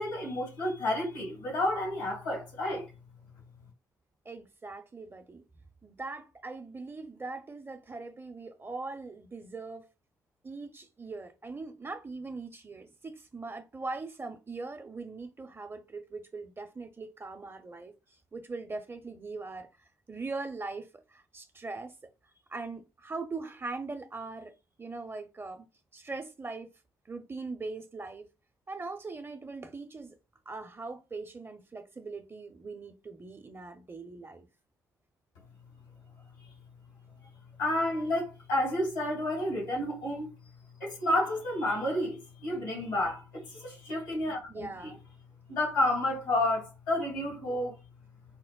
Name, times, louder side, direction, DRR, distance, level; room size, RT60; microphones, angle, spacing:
voice 1, 0.0-2.8 37.6-40.3 40.8-44.9 45.5-47.7, left 1 dB, 85° left, 1.6 m, -30 dB
voice 2, 4.2-5.4 5.8-9.9 10.4-17.9 18.3-19.7 20.1-21.9 22.5-25.7 25.9-26.7 27.1-28.3 28.7-30.1 30.5-34.5 44.5-45.0, right 3 dB, 25° right, 0.6 m, -41 dB
4.3 x 2.1 x 2.2 m
hypercardioid pair, 40°, 9 cm